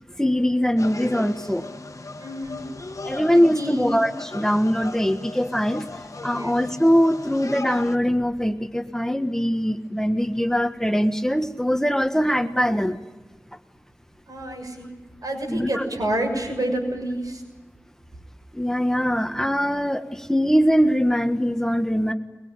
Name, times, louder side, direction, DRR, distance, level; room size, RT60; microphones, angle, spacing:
voice 1, 0.2-1.6 3.0-5.9 6.2-13.0 15.5-15.8 18.5-22.1, equal, 10° left, 7 dB, 1.5 m, -22 dB
sound 1, 0.8-8.0, left 3 dB, 60° left, 1.4 m, -37 dB
voice 2, 2.2-2.6 3.3-4.0 6.3-6.6 14.3-14.9 15.2-17.4, right 1 dB, 85° right, 2 dB, 6.6 m, -28 dB
22.5 x 22.5 x 9.0 m, 1.2 s
wide cardioid pair, 50°, 6 cm